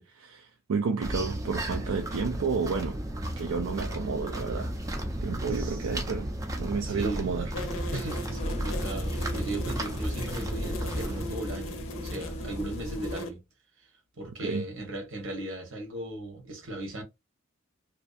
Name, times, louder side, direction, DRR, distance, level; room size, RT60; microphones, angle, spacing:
voice 1, 0.0-3.0 3.4-4.7 5.2-6.3 6.6-7.5 14.4-14.6, right 5 dB, 90° right, 0.4 m, -31 dB
sound 1, 1.0-11.3, right 1 dB, 15° right, 0.4 m, -34 dB
voice 2, 5.5-5.9 6.8-7.3 7.9-13.4 13.8-13.9 14.2-17.0, right 1 dB, 70° right, 1.1 m, -37 dB
sound 2, 7.5-13.3, left 1 dB, 80° left, 0.6 m, -39 dB
sound 3, 8.4-13.3, left 1 dB, 30° left, 0.5 m, -39 dB
2.6 x 2.3 x 2.4 m
head